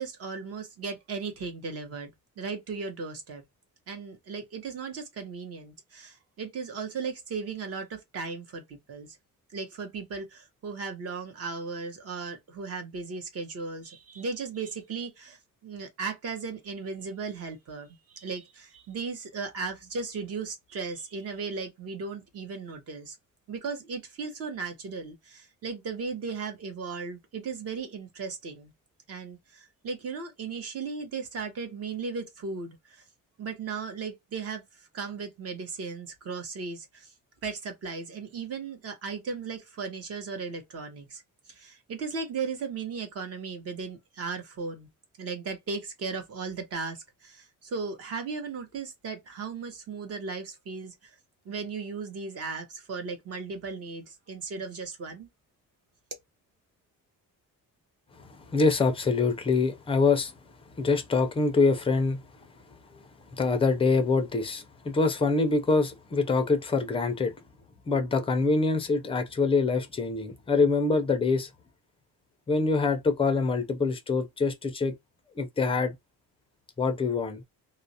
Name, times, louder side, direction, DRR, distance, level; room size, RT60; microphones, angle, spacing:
voice 1, 0.0-2.1 2.4-3.4 3.9-9.1 9.5-23.2 23.5-28.7 29.1-33.0 33.4-37.1 37.4-41.2 41.5-44.9 45.2-51.1 51.4-55.3, right 4 dB, 45° right, 0.8 m, -36 dB
voice 2, 58.3-60.3 60.8-62.2 63.4-67.3 67.9-71.5 72.5-74.9 75.4-75.9 76.8-77.4, left 4 dB, 15° left, 0.4 m, -25 dB
2.3 x 2.0 x 2.6 m
cardioid pair, 165°, 34 cm